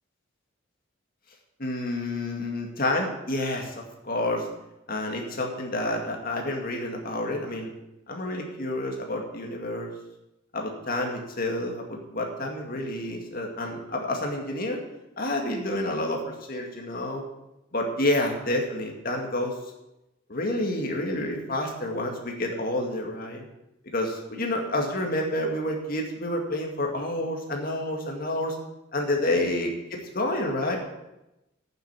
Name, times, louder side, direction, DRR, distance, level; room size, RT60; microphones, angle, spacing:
voice 1, 1.6-3.7 4.0-4.5 4.9-7.7 8.1-9.9 10.5-14.8 15.2-17.2 17.7-19.5 20.3-23.5 23.9-28.5 28.9-29.7 30.1-30.8, left 1 dB, 45° left, 1 dB, 2.1 m, -29 dB
9.3 x 7.7 x 8.3 m, 0.94 s
head